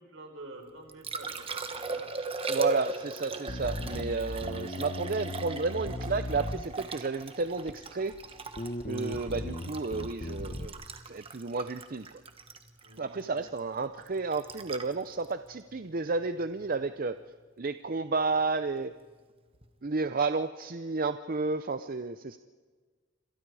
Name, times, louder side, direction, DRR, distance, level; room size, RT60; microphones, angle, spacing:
voice 1, 0.0-2.1 12.8-13.4, right 2 dB, 65° right, 4 dB, 4.6 m, -48 dB
Liquid, 0.6-16.7 19.5-19.7, right 3 dB, 30° right, 1.4 m, -39 dB
voice 2, 2.5-8.4 8.9-10.8 11.0-12.1 13.0-17.2 17.6-18.9 19.8-22.4, right 4 dB, 45° right, 11 dB, 0.6 m, -31 dB
Bass guitar, 3.5-7.1 7.7-8.2 8.6-10.7, left 1 dB, 40° left, 1.0 m, -37 dB
28.5 x 26.0 x 4.9 m, 1.5 s
head